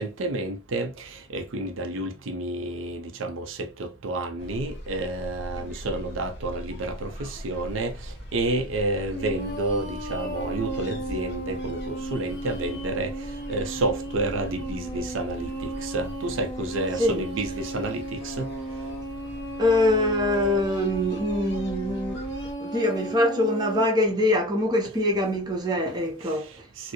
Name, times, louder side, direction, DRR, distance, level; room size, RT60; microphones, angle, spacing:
voice 1, 0.0-18.5 26.2-26.9, right 2 dB, 70° right, 0.5 m, -30 dB
sound 1, 4.4-22.5, equal, 55° left, 1.1 m, -41 dB
sound 2, 9.1-23.9, right 1 dB, 15° left, 0.9 m, -35 dB
voice 2, 19.6-22.3 22.6-26.7, left 1 dB, 20° right, 0.7 m, -24 dB
4.3 x 2.0 x 3.0 m
head